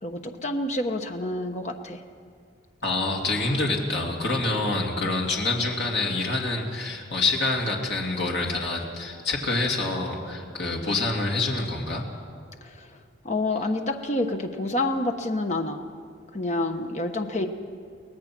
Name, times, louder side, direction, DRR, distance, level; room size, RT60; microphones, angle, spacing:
voice 1, 0.0-2.0 12.6-15.8 16.3-17.5, left 2 dB, 35° left, 5 dB, 1.1 m, -28 dB
voice 2, 2.8-12.0, left 2 dB, 60° left, -1 dB, 2.6 m, -26 dB
23.5 x 18.0 x 6.1 m, 2.1 s
head